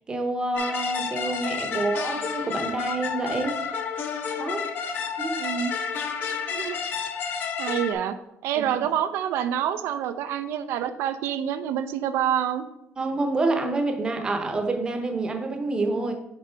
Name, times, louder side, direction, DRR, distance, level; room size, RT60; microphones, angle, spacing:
voice 1, 0.1-3.6 4.4-5.4 8.5-8.7 13.0-16.1, right 2 dB, 20° right, 5 dB, 0.7 m, -27 dB
sound 1, 0.6-7.9, left 6 dB, 50° left, 0.7 m, -30 dB
voice 2, 5.4-5.7 6.5-6.8 7.6-8.2 8.4-12.6, right 9 dB, 75° right, 10 dB, 0.4 m, -27 dB
6.7 x 3.8 x 4.4 m, 0.88 s
cardioid pair, 165°, 4 cm